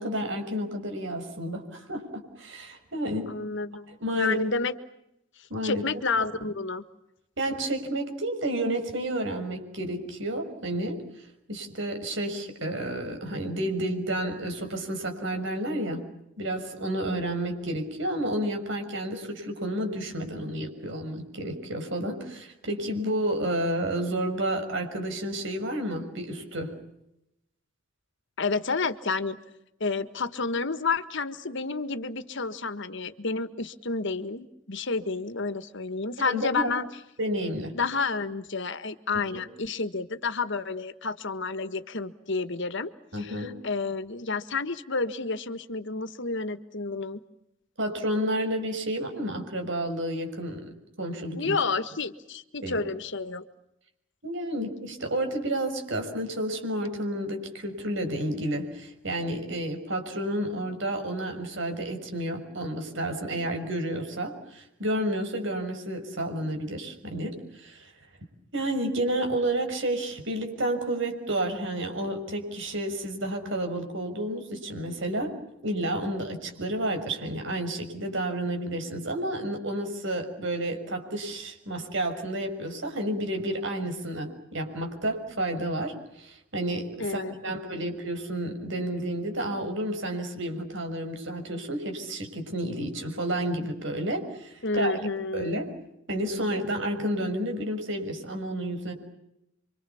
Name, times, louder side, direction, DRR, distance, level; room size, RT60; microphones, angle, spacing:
voice 1, 0.0-3.3 3.7-4.4 5.5-6.3 7.4-16.0 16.4-26.7 36.2-36.7 37.2-37.7 39.3-39.4 43.1-43.5 47.8-50.6 51.0-51.6 52.6-52.9 54.2-67.9 68.5-75.3 75.6-95.0 95.3-95.7 96.1-98.9, right 1 dB, 65° right, 5 dB, 6.2 m, -31 dB
voice 2, 3.3-4.7 5.6-6.8 28.4-29.4 29.8-36.9 37.7-42.9 43.2-47.2 51.3-53.4 87.0-87.8 94.6-95.6, left 4 dB, 65° left, 12 dB, 1.6 m, -30 dB
28.5 x 25.0 x 7.1 m, 0.83 s
head